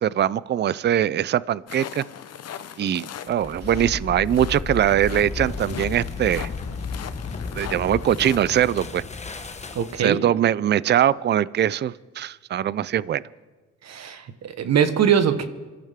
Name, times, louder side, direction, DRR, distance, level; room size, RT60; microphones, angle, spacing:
voice 1, 0.0-2.0 2.8-6.5 7.5-9.0 10.0-13.2, right 10 dB, 35° right, 20 dB, 0.4 m, -22 dB
sound 1, 1.7-8.6, left 9 dB, 55° left, 0.9 m, -39 dB
sound 2, 3.3-10.2, left 4 dB, 20° left, 1.1 m, -33 dB
voice 2, 9.7-10.2 13.8-15.4, right 8 dB, 60° right, 10 dB, 1.3 m, -22 dB
25.5 x 13.5 x 3.6 m, 1.3 s
cardioid pair, 90°, 30 cm